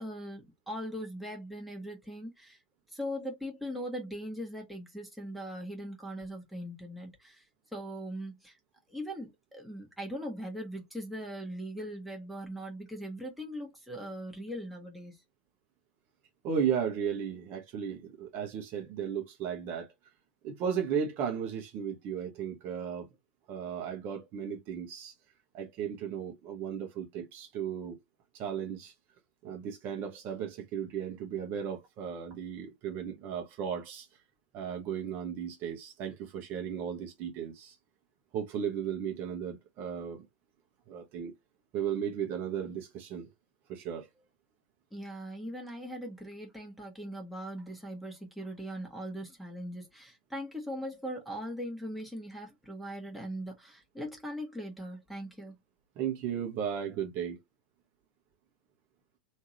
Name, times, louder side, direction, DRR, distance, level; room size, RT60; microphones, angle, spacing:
voice 1, 0.0-2.6 2.9-7.4 7.7-8.6 8.9-15.2 44.9-55.5, equal, ahead, 1.3 m, -40 dB
voice 2, 16.4-19.9 20.4-23.1 23.5-25.1 25.5-28.0 28.3-28.9 29.4-34.1 34.5-37.8 38.3-40.3 40.9-41.3 41.7-43.3 43.7-44.1 56.0-57.4, right 8 dB, 40° right, 1.0 m, -35 dB
3.6 x 2.7 x 2.9 m
figure-of-eight pair, 90°, 5 cm